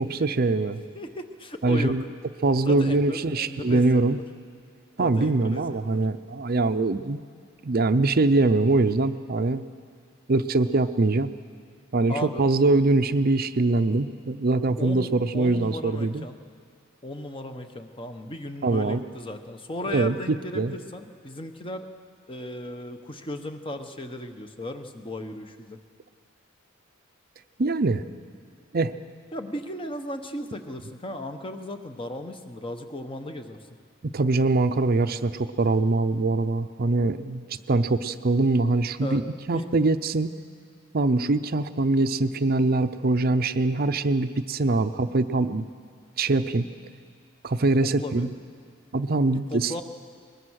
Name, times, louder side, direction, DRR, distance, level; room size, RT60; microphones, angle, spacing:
voice 1, 0.0-0.8 1.6-2.0 2.4-4.2 5.0-7.2 7.6-9.6 10.3-11.3 11.9-16.3 18.6-19.0 19.9-20.7 27.6-28.0 28.7-28.9 34.0-37.4 37.7-39.2 39.5-40.3 40.9-45.6 46.2-46.7 47.4-48.3 48.9-49.7, right 2 dB, 45° right, 11 dB, 0.6 m, -23 dB
voice 2, 0.9-2.0 2.6-4.2 5.0-6.0 12.1-12.5 14.8-16.4 17.0-21.9 22.3-25.8 29.3-33.6 39.0-39.7 44.9-45.1 47.8-48.3 49.3-49.8, left 1 dB, 25° left, 7 dB, 1.0 m, -36 dB
22.0 x 21.0 x 6.4 m, 2.1 s
head